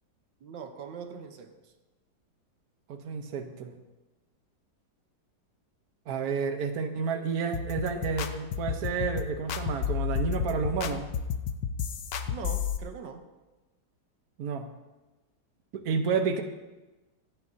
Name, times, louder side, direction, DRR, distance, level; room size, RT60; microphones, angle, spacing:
voice 1, 0.4-1.7 12.3-13.3, right 6 dB, 85° right, 6 dB, 1.7 m, -42 dB
voice 2, 2.9-3.7 6.1-11.1 14.4-14.7 15.7-16.4, right 5 dB, 60° right, 5 dB, 1.4 m, -30 dB
sound 1, 7.5-12.8, left 8 dB, 70° left, 1.3 m, -31 dB
26.0 x 9.5 x 2.8 m, 1.1 s
omnidirectional pair, 2.0 m